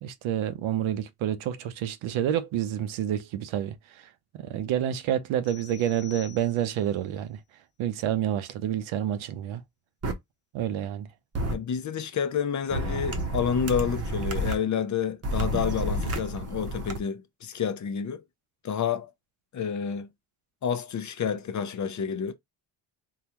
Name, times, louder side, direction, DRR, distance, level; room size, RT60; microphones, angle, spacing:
voice 1, 0.0-4.1 4.3-7.4 7.8-9.6 10.5-11.1, right 10 dB, 85° right, 0.7 m, -29 dB
sound 1, 5.4-7.0, left 10 dB, 75° left, 1.3 m, -48 dB
sound 2, 10.0-10.1 11.3-11.5 12.7-14.5 15.2-17.0, right 1 dB, 30° right, 0.7 m, -30 dB
voice 2, 11.5-18.2 18.6-19.1 19.5-20.1 20.6-22.3, left 7 dB, 40° left, 0.6 m, -29 dB
3.8 x 2.3 x 2.9 m
cardioid pair, 125°, 47 cm